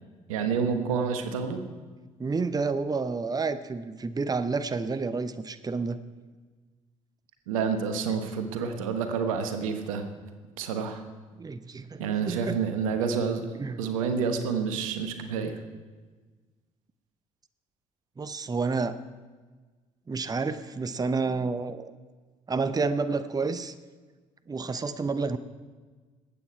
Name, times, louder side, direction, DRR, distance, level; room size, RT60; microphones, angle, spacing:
voice 1, 0.3-1.6 7.5-10.0 10.6-11.0 12.0-13.4 13.8-15.6, right 6 dB, 85° right, 7 dB, 1.1 m, -28 dB
voice 2, 2.2-6.0 11.4-12.6 13.6-13.8 18.2-19.0 20.1-21.9 22.5-23.7 24.5-25.4, right 4 dB, 20° right, 13 dB, 0.8 m, -29 dB
20.0 x 8.6 x 4.7 m, 1.4 s
hypercardioid pair, 50°, 17 cm